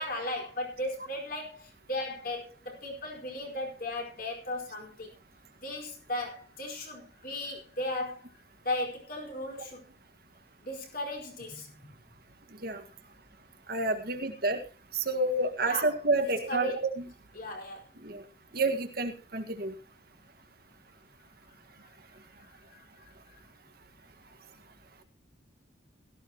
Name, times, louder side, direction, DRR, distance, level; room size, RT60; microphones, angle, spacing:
voice 1, 0.0-5.1 5.6-8.2 8.6-9.9 10.6-11.9 15.6-15.9 16.2-16.7 17.4-17.8 22.4-22.8, left 1 dB, 45° left, 1 dB, 4.7 m, -36 dB
voice 2, 13.7-14.6 14.9-17.0 18.0-18.2 18.5-19.7, right 2 dB, 50° right, 5 dB, 1.7 m, -29 dB
17.0 x 14.0 x 3.0 m, 0.32 s
head